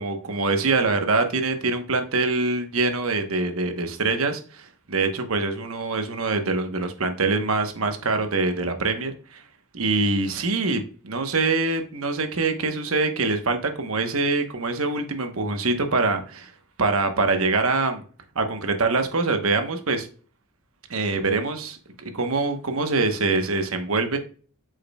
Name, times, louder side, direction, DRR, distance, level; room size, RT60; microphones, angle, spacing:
voice 1, 0.0-9.4 9.7-16.5 16.8-18.0 18.3-20.1 20.9-24.2, right 3 dB, 75° right, 6 dB, 1.1 m, -24 dB
8.3 x 6.4 x 2.3 m, 0.40 s
head